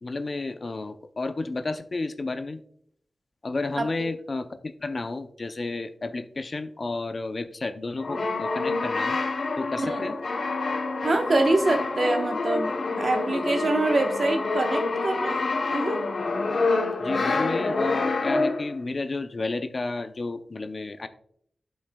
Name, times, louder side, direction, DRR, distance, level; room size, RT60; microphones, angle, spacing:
voice 1, 0.0-2.6 3.4-9.2 9.6-10.1 17.0-21.1, left 3 dB, 50° left, 10 dB, 0.5 m, -31 dB
voice 2, 3.8-4.1 9.9-10.1 11.0-15.4 15.7-16.0, right 2 dB, 60° right, 5 dB, 1.0 m, -25 dB
Brass instrument, 8.0-18.8, left 3 dB, 75° left, 0.9 m, -27 dB
12.0 x 5.2 x 2.2 m, 0.66 s
wide cardioid pair, 75°, 0 cm